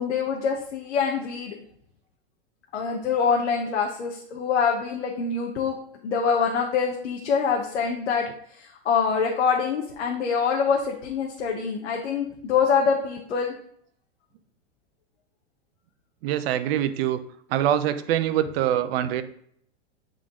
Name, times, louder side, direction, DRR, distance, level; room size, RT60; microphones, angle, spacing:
voice 1, 0.0-1.5 2.7-5.7 6.0-8.3 8.5-13.5, left 6 dB, 85° left, 0 dB, 1.2 m, -25 dB
voice 2, 16.2-17.2 17.5-19.2, right 11 dB, 60° right, 11 dB, 0.7 m, -24 dB
8.4 x 3.8 x 3.7 m, 0.66 s
hypercardioid pair, 120°, 34 cm